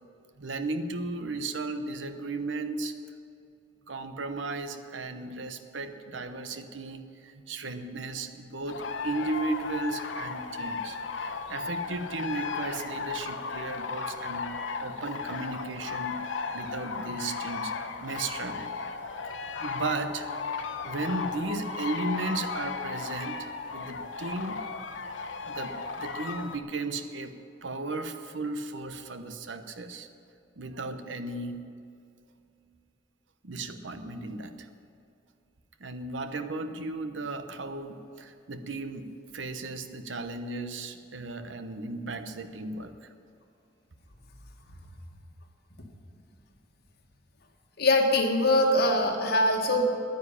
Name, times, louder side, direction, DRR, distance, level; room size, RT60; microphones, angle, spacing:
voice 1, 0.4-2.9 3.9-14.5 14.8-16.3 16.5-17.7 18.0-18.7 19.6-20.3 20.5-23.4 23.7-24.6 25.4-27.3 27.6-30.1 30.6-31.6 33.4-34.7 35.8-42.9, right 2 dB, 75° right, 9 dB, 0.9 m, -35 dB
sound 1, 8.7-26.6, left 4 dB, 75° left, 0.9 m, -35 dB
voice 2, 47.8-49.8, left 1 dB, 60° left, 2 dB, 1.8 m, -23 dB
11.0 x 9.8 x 9.7 m, 2.5 s
head